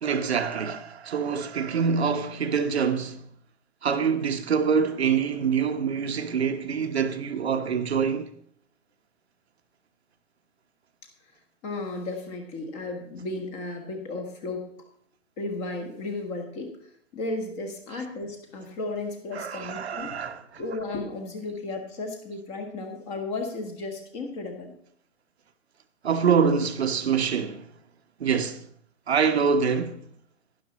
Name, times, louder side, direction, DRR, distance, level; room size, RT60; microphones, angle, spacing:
voice 1, 0.0-3.3 3.8-8.3 19.3-20.4 26.0-27.7 28.2-28.6 29.1-30.0, right 6 dB, 55° right, 1.0 m, -25 dB
voice 2, 11.6-14.7 15.4-20.3 20.5-24.7, left 2 dB, 20° left, 1.5 m, -34 dB
11.5 x 10.5 x 4.2 m
figure-of-eight pair, 145°, 38 cm